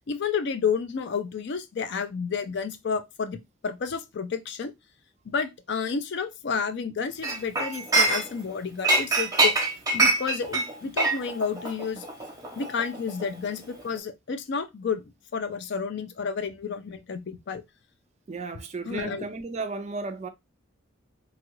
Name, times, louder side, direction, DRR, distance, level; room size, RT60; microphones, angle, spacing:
voice 1, 0.1-4.7 5.3-9.5 9.9-12.0 12.6-15.0 15.3-17.6 18.9-19.3, left 6 dB, 55° left, 0.4 m, -30 dB
Chink clink, 7.2-8.5 8.8-13.4 13.7-14.0, right 2 dB, 20° right, 0.7 m, -25 dB
voice 2, 18.3-20.3, right 3 dB, 35° right, 0.3 m, -34 dB
2.9 x 2.4 x 3.0 m
head